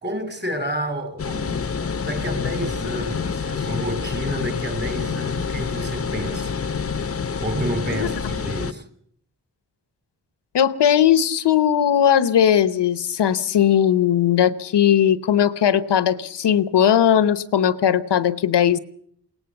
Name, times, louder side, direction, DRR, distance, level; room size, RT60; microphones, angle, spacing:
voice 1, 0.0-6.6 7.4-8.9, equal, 25° right, 2.8 m, -30 dB
sound 1, 1.2-8.7, left 5 dB, 35° left, 0.8 m, -27 dB
voice 2, 10.5-18.8, left 9 dB, 85° left, 1.0 m, -18 dB
21.0 x 18.0 x 7.1 m
cardioid pair, 60°, 40 cm